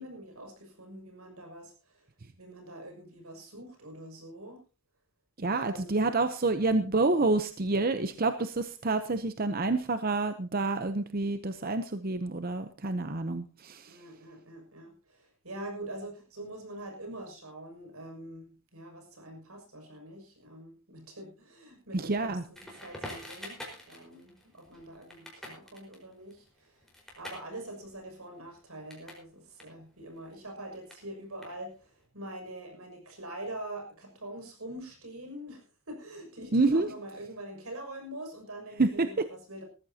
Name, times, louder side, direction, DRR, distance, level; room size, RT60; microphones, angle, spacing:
voice 1, 0.0-2.1 2.4-4.6 5.5-6.1 13.9-23.6 23.9-26.8 27.2-39.6, right 1 dB, 80° right, 3 dB, 6.4 m, -44 dB
voice 2, 5.4-14.0 21.9-22.4 36.5-36.9 38.8-39.2, right 3 dB, 40° right, 10 dB, 0.7 m, -28 dB
Crackle, 22.5-29.3 29.5-32.0, left 1 dB, ahead, 4.7 m, -47 dB
19.5 x 14.0 x 2.8 m, 0.36 s
head